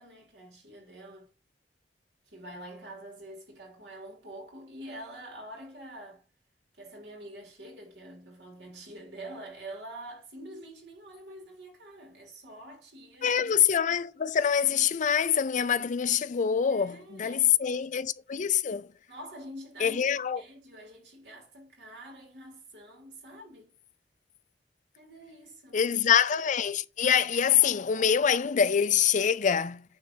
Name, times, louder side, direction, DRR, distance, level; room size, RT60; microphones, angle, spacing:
voice 1, 0.0-1.3 2.3-6.3 6.8-13.7 16.7-17.9 19.1-23.7 24.9-25.9, right 1 dB, 70° right, 3.3 m, -46 dB
voice 2, 13.2-18.9 19.8-20.4 25.7-29.8, left 8 dB, 45° left, 0.5 m, -25 dB
9.5 x 3.3 x 5.3 m
head